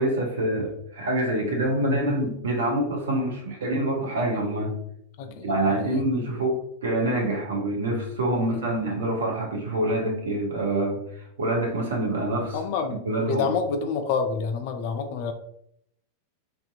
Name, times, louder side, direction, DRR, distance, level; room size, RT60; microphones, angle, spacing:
voice 1, 0.0-4.7 5.4-11.0 11.4-12.6 13.1-13.5, right 1 dB, 65° right, -1 dB, 0.7 m, -26 dB
voice 2, 5.2-6.0 8.4-8.7 12.5-15.3, left 5 dB, 50° left, 6 dB, 0.3 m, -28 dB
2.6 x 2.4 x 2.4 m, 0.73 s
figure-of-eight pair, 90°, 0 cm